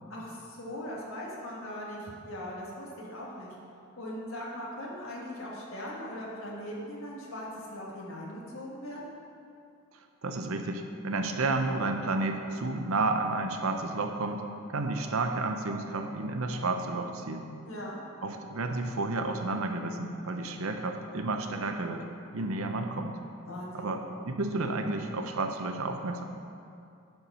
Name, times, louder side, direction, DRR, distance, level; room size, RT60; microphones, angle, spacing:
voice 1, 0.1-3.5 4.0-9.1 17.7-18.0 23.5-23.9, equal, 75° left, -4 dB, 1.6 m, -40 dB
voice 2, 10.2-14.4 14.7-17.5 18.2-22.1 22.3-23.1 23.7-24.0 24.3-26.2, right 2 dB, 80° right, 5 dB, 0.7 m, -31 dB
10.5 x 4.7 x 5.5 m, 2.5 s
head